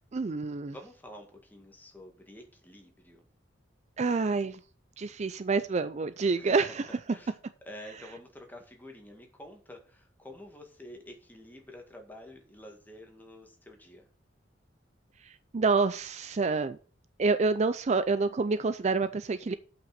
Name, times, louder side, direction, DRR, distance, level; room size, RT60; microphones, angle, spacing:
voice 1, 0.1-0.7 4.0-4.6 5.0-7.0 15.2-16.8 17.2-19.5, right 4 dB, 35° right, 13 dB, 0.4 m, -28 dB
voice 2, 0.7-3.2 6.4-6.6 6.9-7.3 7.6-14.0, left 1 dB, 10° left, 3 dB, 1.9 m, -49 dB
7.8 x 6.0 x 6.5 m, 0.39 s
head